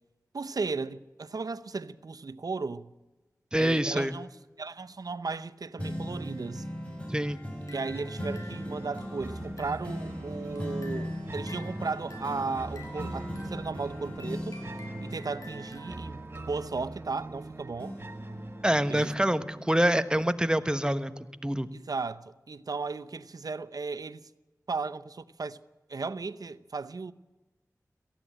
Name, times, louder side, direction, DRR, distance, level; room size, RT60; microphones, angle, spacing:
voice 1, 0.3-2.9 3.6-4.3 4.6-6.7 7.7-14.6 15.0-16.2 16.5-18.0 18.9-19.1 21.7-24.3 24.7-25.6 25.9-27.1, right 4 dB, 75° right, 0.7 m, -35 dB
voice 2, 3.5-4.1 7.1-7.4 18.6-21.1 21.4-21.7, right 1 dB, 15° right, 1.2 m, -26 dB
sound 1, 5.8-17.4 17.8-19.7 20.2-20.3, equal, 20° left, 5.6 m, -39 dB
sound 2, 7.4-10.0 10.4-16.5, equal, 60° left, 4.9 m, -51 dB
sound 3, 7.9-20.9, right 2 dB, 35° right, 1.4 m, -43 dB
18.0 x 15.0 x 10.0 m
cardioid pair, 40°, 6 cm